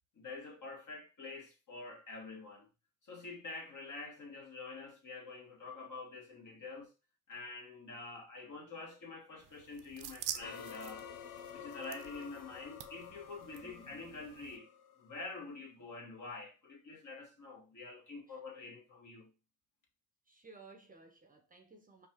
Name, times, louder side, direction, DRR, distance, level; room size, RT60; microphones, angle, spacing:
voice 1, 0.1-2.7 3.0-6.9 7.3-11.0 11.5-14.7 15.0-19.3, left 3 dB, 50° left, 1.7 m, -47 dB
sound 1, 9.4-14.6, right 11 dB, 55° right, 0.5 m, -48 dB
sound 2, 10.4-15.4, left 9 dB, 70° left, 0.6 m, -50 dB
voice 2, 13.6-14.0 18.3-18.4 20.3-22.1, right 3 dB, 20° right, 0.8 m, -57 dB
4.6 x 2.5 x 2.9 m
supercardioid pair, 65°, 39 cm